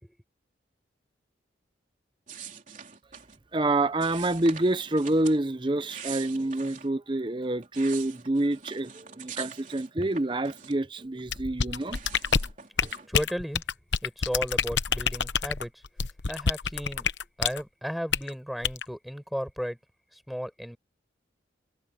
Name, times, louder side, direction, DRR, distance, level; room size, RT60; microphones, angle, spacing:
sound 1, 2.3-3.4 4.0-5.4 5.8-6.9 7.4-11.0 11.3-13.1, right 7 dB, 40° right, 3.4 m, -44 dB
voice 1, 3.5-8.9 9.2-12.0, right 2 dB, 25° right, 0.7 m, -27 dB
sound 2, 11.3-17.6 18.1-18.3 18.6-18.8, left 6 dB, 70° left, 0.9 m, -27 dB
voice 2, 13.1-13.6 14.0-15.8 16.3-17.1 17.4-19.8 20.1-20.8, equal, ahead, 5.7 m, -34 dB
head